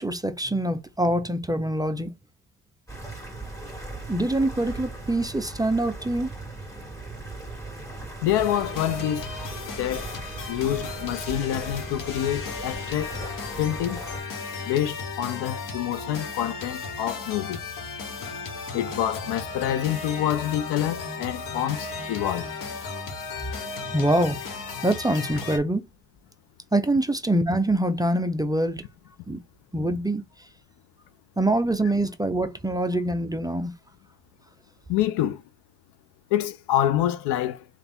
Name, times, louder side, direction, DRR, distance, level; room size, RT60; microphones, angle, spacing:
voice 1, 0.0-2.1 4.1-6.3 23.9-24.4 24.8-25.8 26.7-28.8 29.3-29.4 29.7-30.2 31.4-33.7, right 1 dB, 10° right, 0.5 m, -24 dB
sound 1, 2.9-14.2, right 2 dB, 10° left, 2.1 m, -38 dB
voice 2, 8.2-9.3 9.8-10.1 10.5-13.2 13.6-14.0 14.7-17.6 18.7-22.5 34.9-35.4 36.3-37.7, left 12 dB, 75° left, 0.7 m, -27 dB
sound 2, 8.4-25.6, left 4 dB, 50° left, 1.2 m, -35 dB
3.4 x 2.5 x 4.2 m
supercardioid pair, 80°, 40 cm